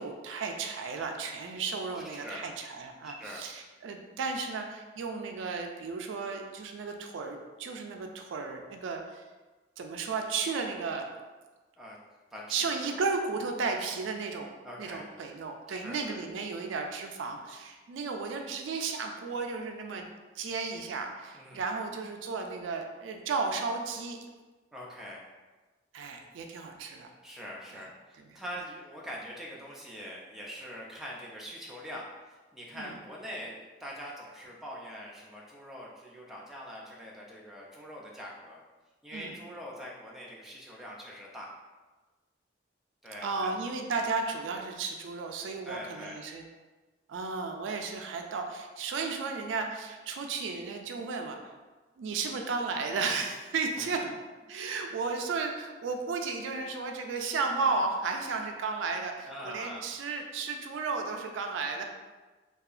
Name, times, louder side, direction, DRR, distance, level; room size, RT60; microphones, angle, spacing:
voice 1, 0.0-9.2 9.8-11.0 12.5-20.1 20.4-24.2 25.9-27.1 28.2-28.4 32.7-32.9 39.1-39.3 43.2-46.4 47.1-51.5 52.0-54.0 54.5-61.8, right 4 dB, 80° right, 4 dB, 0.3 m, -34 dB
voice 2, 1.9-2.4 3.0-3.4 11.8-12.0 12.3-12.9 14.6-15.1 15.7-16.2 21.3-21.7 24.7-25.2 27.2-38.6 39.0-41.5 43.0-43.5 45.6-46.2 53.8-53.9 59.3-59.9, equal, ahead, -4 dB, 0.3 m, -43 dB
2.7 x 2.3 x 2.4 m, 1.3 s
head